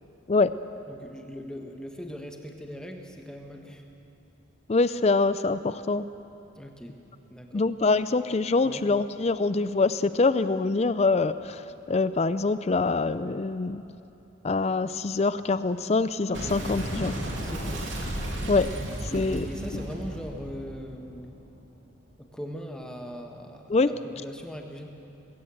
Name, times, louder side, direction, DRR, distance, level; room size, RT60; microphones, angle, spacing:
voice 1, 0.9-3.8 6.6-7.0 7.3-7.7 8.6-8.9 17.4-17.9 19.1-21.4 22.2-24.9, equal, 5° left, 3 dB, 1.3 m, -40 dB
voice 2, 4.7-6.0 7.5-13.8 14.4-17.2 18.5-18.7 19.0-19.5 23.7-23.9, left 3 dB, 30° left, 14 dB, 0.4 m, -24 dB
Boom, 16.3-21.6, right 1 dB, 70° right, 2.8 m, -34 dB
21.0 x 17.0 x 7.8 m, 2.9 s
head